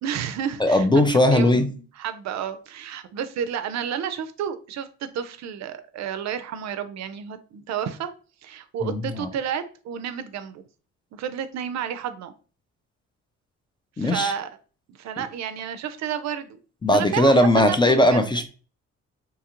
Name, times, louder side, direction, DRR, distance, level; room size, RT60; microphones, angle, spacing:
voice 1, 0.0-0.9 1.3-8.1 8.4-10.6 11.1-12.3 14.0-14.5 14.9-16.6 16.9-18.3, right 8 dB, 65° right, 10 dB, 0.4 m, -31 dB
voice 2, 0.6-1.7 8.8-9.3 14.0-14.3 15.2-15.3 16.8-18.5, left 1 dB, 15° left, 6 dB, 0.3 m, -19 dB
2.8 x 2.4 x 2.9 m, 0.37 s
cardioid pair, 90°, 30 cm